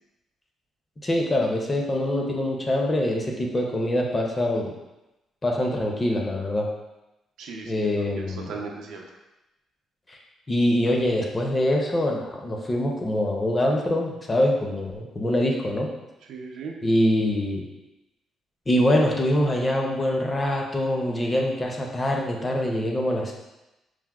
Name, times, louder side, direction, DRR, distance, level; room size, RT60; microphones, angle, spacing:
voice 1, 1.0-4.7 5.4-6.7 7.7-8.5 10.1-10.2 10.5-15.9 16.8-17.7 18.7-23.3, left 1 dB, 20° left, 0 dB, 0.4 m, -24 dB
voice 2, 7.4-9.0 16.3-16.7, right 4 dB, 90° right, 0 dB, 0.5 m, -37 dB
4.6 x 2.0 x 2.2 m, 0.97 s
cardioid pair, 160°, 0 cm